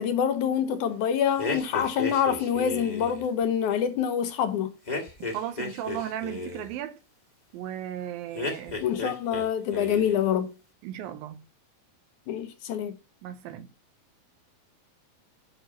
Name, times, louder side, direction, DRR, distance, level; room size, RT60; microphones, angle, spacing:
voice 1, 0.0-4.7 8.8-10.5 12.3-13.0, left 8 dB, 70° left, 2.0 m, -26 dB
sound 1, 1.4-3.2 4.9-6.7 8.3-9.5 9.7-10.2, left 3 dB, 25° left, 0.9 m, -33 dB
voice 2, 5.3-7.0 7.5-8.8 10.8-11.4 13.2-13.7, right 11 dB, 80° right, 2.5 m, -35 dB
9.4 x 6.0 x 5.9 m
omnidirectional pair, 4.3 m